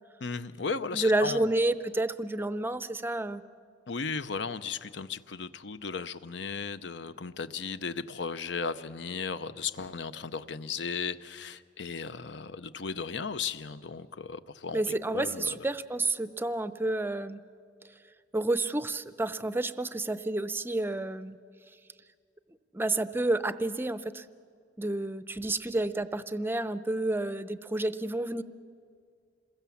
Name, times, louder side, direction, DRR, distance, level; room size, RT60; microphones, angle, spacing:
voice 1, 0.2-1.5 3.9-15.6, left 5 dB, 70° left, 13 dB, 0.7 m, -36 dB
voice 2, 0.9-3.4 14.7-17.4 18.3-21.4 22.7-24.2 24.8-28.4, right 2 dB, 10° right, 13 dB, 0.5 m, -30 dB
27.5 x 21.5 x 7.2 m, 2.3 s
head